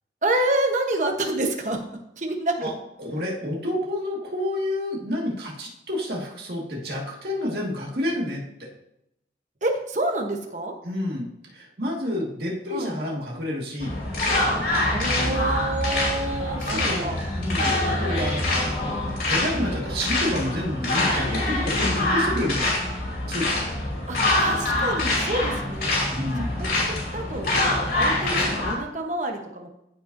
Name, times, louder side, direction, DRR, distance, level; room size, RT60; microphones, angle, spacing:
voice 1, 0.2-1.8 2.2-2.7 9.6-10.7 12.7-12.9 14.9-17.2 17.6-17.8 24.1-26.0 26.4-27.5 28.0-29.7, right 2 dB, 45° right, 3 dB, 1.1 m, -28 dB
voice 2, 2.6-8.7 10.8-13.9 16.6-22.8 23.3-23.8 26.1-26.5, left 1 dB, 60° right, -2 dB, 2.0 m, -29 dB
sound 1, 13.8-28.7, left 1 dB, 60° left, 3.0 m, -25 dB
14.5 x 5.3 x 2.7 m, 0.82 s
head